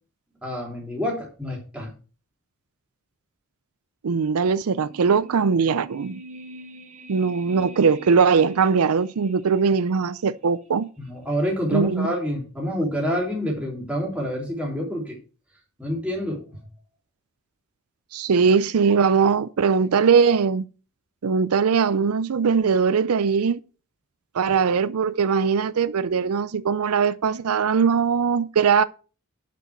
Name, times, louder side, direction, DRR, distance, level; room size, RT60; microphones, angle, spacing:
voice 1, 0.4-1.9 11.0-15.2 15.8-16.5, equal, 5° right, 3.6 m, -27 dB
voice 2, 4.0-6.2 7.1-10.9 11.7-12.1 18.1-20.6 21.2-23.6 24.3-28.8, right 5 dB, 90° right, 0.5 m, -20 dB
sound 1, 4.7-10.0 10.2-10.3, right 1 dB, 30° right, 1.3 m, -44 dB
8.4 x 6.1 x 6.3 m
head